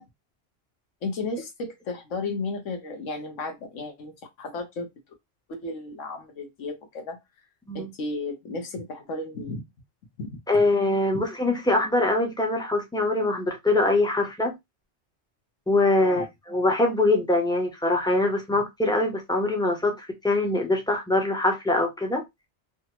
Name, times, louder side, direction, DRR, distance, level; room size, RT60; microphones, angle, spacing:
voice 1, 1.0-4.9 5.5-7.2 7.7-9.6 10.2-10.4 11.1-11.2 16.0-16.3, left 3 dB, 90° left, 1.2 m, -34 dB
voice 2, 10.5-14.5 15.7-22.2, left 2 dB, 5° left, 0.4 m, -23 dB
3.3 x 2.0 x 2.9 m
omnidirectional pair, 1.3 m